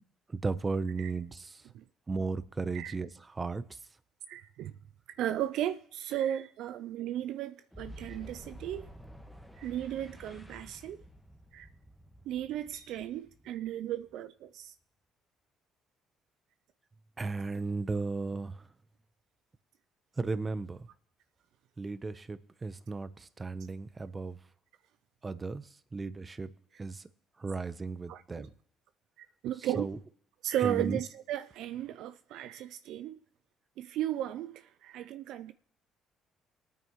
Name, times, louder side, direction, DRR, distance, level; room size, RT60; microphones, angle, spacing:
voice 1, 0.3-1.6 2.1-3.8 17.2-18.7 20.2-20.9 21.8-24.4 25.2-26.5 26.8-27.0 27.4-28.5 29.8-30.0 30.6-31.0, right 3 dB, 30° right, 0.8 m, -35 dB
voice 2, 4.3-4.7 5.2-8.9 9.6-11.0 11.5-11.7 12.3-14.7 28.1-28.5 29.2-29.9 30.4-33.2 33.8-35.5, right 11 dB, 75° right, 0.4 m, -35 dB
Boom, 7.7-14.3, equal, ahead, 1.5 m, -51 dB
21.5 x 9.2 x 3.1 m
supercardioid pair, 70°, 0 cm